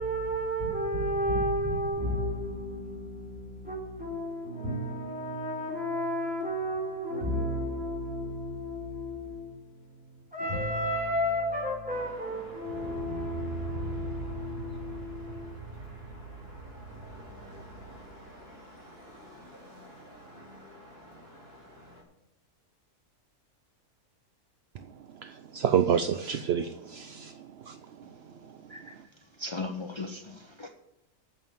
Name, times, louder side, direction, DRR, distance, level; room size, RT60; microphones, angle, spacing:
voice 1, 0.0-10.0 10.3-16.7, equal, 5° right, 3.9 m, -32 dB
sound 1, 11.9-22.0, equal, 40° right, 3.7 m, -50 dB
voice 2, 25.2-28.1 28.4-28.6, right 8 dB, 65° right, 0.6 m, -29 dB
voice 3, 28.7-29.0 29.4-30.7, left 2 dB, 35° left, 0.4 m, -37 dB
9.1 x 7.0 x 8.9 m
omnidirectional pair, 1.6 m